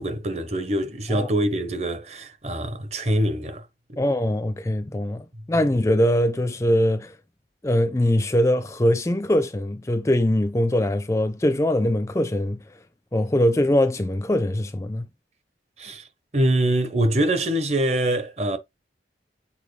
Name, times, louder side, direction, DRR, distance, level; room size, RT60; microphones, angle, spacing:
voice 1, 0.0-3.6 3.9-4.0 15.8-16.0 16.3-18.6, right 1 dB, 35° right, 0.9 m, -24 dB
voice 2, 4.0-7.1 7.6-12.6 13.1-15.1, left 1 dB, 15° left, 0.4 m, -22 dB
7.3 x 4.2 x 3.2 m
head